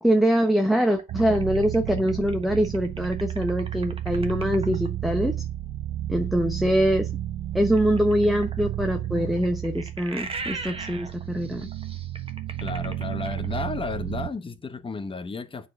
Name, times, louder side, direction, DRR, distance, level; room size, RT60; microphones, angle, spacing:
voice 1, 0.0-5.4 6.1-7.1 7.5-11.7, equal, ahead, 0.8 m, -23 dB
sound 1, 0.8-4.9 7.7-13.8, right 3 dB, 25° right, 1.3 m, -39 dB
sound 2, 1.1-14.3, right 12 dB, 80° right, 0.7 m, -32 dB
voice 2, 12.6-15.7, left 4 dB, 25° left, 1.0 m, -33 dB
9.4 x 4.2 x 6.4 m
cardioid pair, 130°, 21 cm